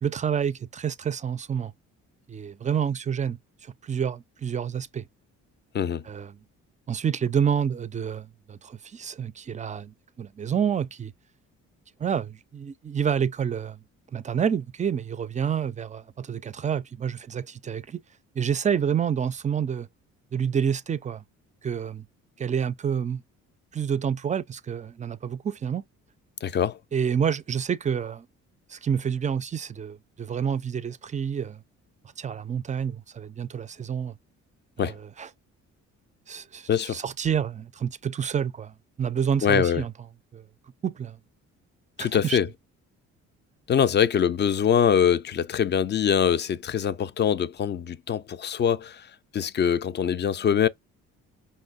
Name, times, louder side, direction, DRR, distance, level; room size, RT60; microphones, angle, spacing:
voice 1, 0.0-1.7 2.3-5.1 6.1-6.3 6.9-11.1 12.0-13.8 14.1-18.0 18.4-19.9 20.3-21.2 21.6-22.1 22.4-23.2 23.7-25.8 26.9-28.3 28.7-31.6 32.2-34.2 34.8-35.3 36.3-39.9 40.3-40.4 40.8-41.2 42.0-42.4, right 7 dB, 25° right, 0.4 m, -28 dB
voice 2, 26.4-26.8 34.8-35.0 36.7-37.0 39.4-39.8 42.0-42.5 43.7-50.7, left 8 dB, 35° left, 0.4 m, -23 dB
5.2 x 2.0 x 2.4 m
cardioid pair, 90°, 30 cm